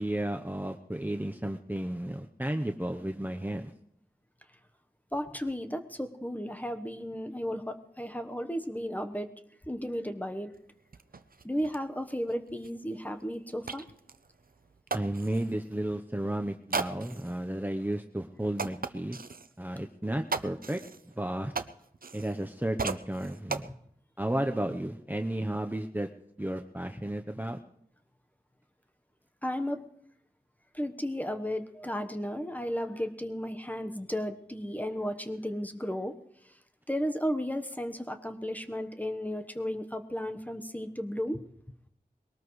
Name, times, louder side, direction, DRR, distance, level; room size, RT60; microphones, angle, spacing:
voice 1, 0.0-3.7 14.9-19.2 19.6-21.5 22.1-23.7 24.2-26.1 26.4-27.6, right 1 dB, 10° right, 4 dB, 0.8 m, -33 dB
voice 2, 5.1-9.3 9.7-10.5 11.4-13.9 29.4-29.8 30.7-36.2 36.4-36.5 36.9-41.4, equal, 10° left, 6 dB, 1.1 m, -34 dB
sound 1, 10.5-10.6 10.9-15.6 16.7-17.4 17.9-18.0 18.6-19.5 20.3-22.5 22.8-23.7, right 4 dB, 70° right, 0.7 m, -37 dB
22.0 x 18.5 x 3.2 m, 0.72 s
wide cardioid pair, 60°, 15 cm